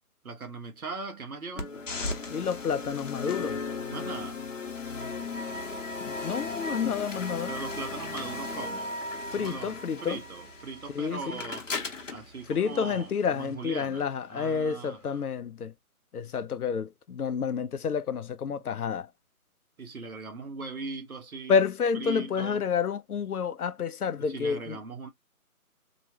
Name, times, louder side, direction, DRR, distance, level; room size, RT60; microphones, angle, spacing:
voice 1, 0.2-1.7 3.9-4.4 7.5-8.9 9.3-9.7 10.0-11.6 12.1-15.2 19.8-21.6 21.9-22.6 24.2-25.1, right 4 dB, 70° right, 1.1 m, -39 dB
sound 1, 1.6-13.5, left 3 dB, 55° left, 0.9 m, -36 dB
voice 2, 2.3-3.6 6.0-7.5 9.3-10.2 10.9-11.4 12.5-15.7 16.1-19.1 21.5-24.8, left 6 dB, 80° left, 0.6 m, -29 dB
2.9 x 2.2 x 2.8 m
figure-of-eight pair, 170°, 45 cm